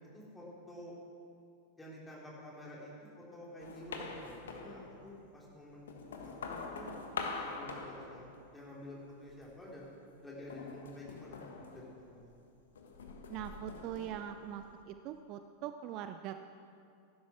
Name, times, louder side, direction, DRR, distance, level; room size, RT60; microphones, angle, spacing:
voice 1, 0.1-0.9 1.8-2.9 3.3-6.9 7.4-8.2 8.5-12.3, left 1 dB, 10° left, -5 dB, 3.8 m, -50 dB
sound 1, 3.6-5.2 5.7-8.7 9.1-9.7 10.5-12.4 12.8-14.8, left 4 dB, 65° left, 1.4 m, -44 dB
voice 2, 13.3-16.4, right 10 dB, 40° right, 9 dB, 0.5 m, -42 dB
17.0 x 11.5 x 4.5 m, 2.5 s
figure-of-eight pair, 90°, 0 cm